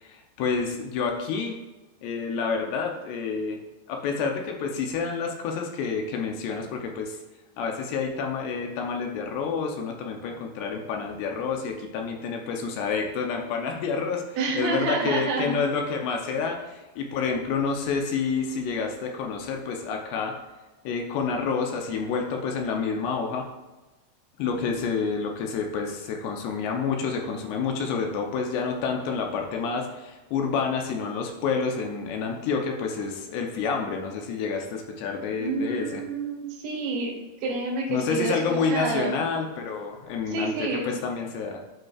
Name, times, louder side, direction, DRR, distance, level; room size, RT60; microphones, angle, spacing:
voice 1, 0.0-1.6 2.0-3.6 3.9-7.2 7.6-20.4 20.9-23.5 24.4-36.0 37.9-40.5 40.8-41.6, left 5 dB, 80° left, 2 dB, 2.7 m, -29 dB
voice 2, 14.4-15.5 35.4-39.1 40.3-41.0, right 3 dB, 60° right, -2 dB, 2.5 m, -29 dB
12.0 x 5.2 x 2.4 m, 1.1 s
omnidirectional pair, 5.2 m